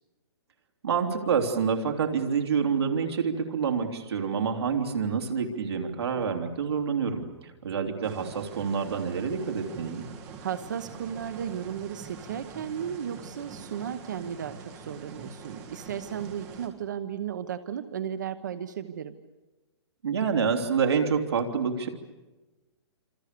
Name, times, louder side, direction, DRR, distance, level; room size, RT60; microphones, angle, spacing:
voice 1, 0.8-10.0 20.0-21.9, right 6 dB, 65° right, 4 dB, 3.3 m, -27 dB
sound 1, 8.0-16.7, right 5 dB, 15° right, 2.2 m, -45 dB
voice 2, 10.4-19.1, right 8 dB, 45° right, 10 dB, 1.1 m, -35 dB
28.0 x 27.0 x 6.8 m, 1.2 s
hypercardioid pair, 180°, 14 cm